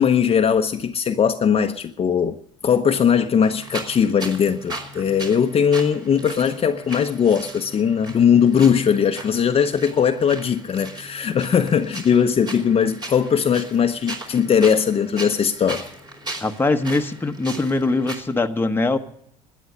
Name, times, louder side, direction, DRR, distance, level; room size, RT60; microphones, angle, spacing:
voice 1, 0.0-2.4 2.6-15.8, left 7 dB, 35° left, 0.9 m, -19 dB
sound 1, 3.4-18.2, right 2 dB, 25° right, 4.1 m, -37 dB
voice 2, 16.4-19.0, left 2 dB, 15° left, 1.2 m, -22 dB
13.0 x 9.2 x 9.9 m
supercardioid pair, 80°, 17 cm